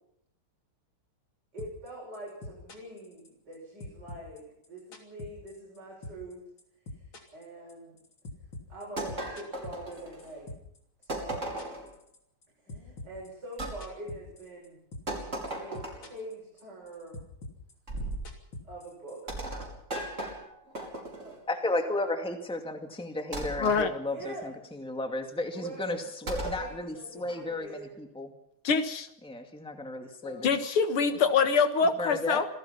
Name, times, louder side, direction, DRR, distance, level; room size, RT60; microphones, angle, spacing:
voice 1, 1.5-6.4 7.3-8.0 8.7-10.5 11.0-11.4 12.6-14.8 15.6-17.2 18.6-19.2 21.2-21.4 24.1-24.5 25.5-28.0, right 2 dB, 50° right, -5 dB, 7.9 m, -43 dB
sound 1, 1.6-1.9 2.1-3.5 3.8-5.8 6.0-6.3 6.6-10.8 11.0-12.4 12.7-14.7 14.9-15.2 15.5-16.3 16.6-19.2, left 2 dB, 60° left, 3.8 m, -43 dB
sound 2, 9.0-10.4 11.1-11.9 13.6-13.8 15.1-16.2 17.9-18.3 19.3-21.4 23.3-23.8 26.3-26.7, right 1 dB, 30° right, 5.5 m, -36 dB
voice 2, 21.5-28.3 29.2-30.5 32.0-32.4, left 2 dB, ahead, 4 dB, 2.1 m, -34 dB
voice 3, 23.6-23.9 28.6-29.1 30.2-32.5, left 5 dB, 80° left, 8 dB, 2.4 m, -25 dB
26.5 x 17.5 x 5.8 m, 0.73 s
omnidirectional pair, 2.4 m